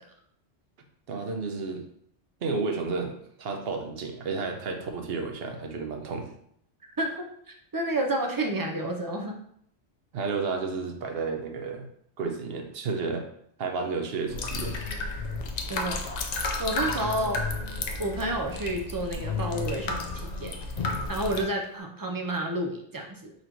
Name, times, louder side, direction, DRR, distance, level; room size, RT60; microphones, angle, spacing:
voice 1, 1.1-1.8 2.4-6.3 10.1-11.9 12.2-13.3 13.6-14.8, right 4 dB, 65° right, 4 dB, 0.9 m, -32 dB
voice 2, 7.7-9.4 15.7-16.0 16.6-17.4 18.0-20.5 21.1-23.3, right 1 dB, 30° right, 2 dB, 0.4 m, -30 dB
sound 1, 14.3-21.4, left 3 dB, 55° left, 0.5 m, -32 dB
4.0 x 2.6 x 4.4 m, 0.68 s
omnidirectional pair, 1.1 m